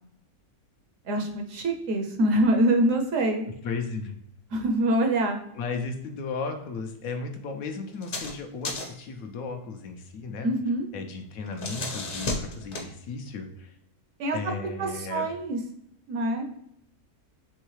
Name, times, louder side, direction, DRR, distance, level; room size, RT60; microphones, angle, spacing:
voice 1, 1.1-3.5 4.5-5.4 10.4-10.9 14.2-14.4 14.8-15.6 16.1-16.5, right 1 dB, 65° right, 4 dB, 0.9 m, -25 dB
voice 2, 3.6-4.2 5.5-10.5 10.9-13.8 14.3-15.3, left 4 dB, 70° left, 5 dB, 1.0 m, -35 dB
sound 1, 7.9-8.4 8.6-9.1 11.3-12.9, left 2 dB, 45° left, 0.8 m, -33 dB
4.6 x 3.2 x 3.1 m, 0.72 s
omnidirectional pair, 1.6 m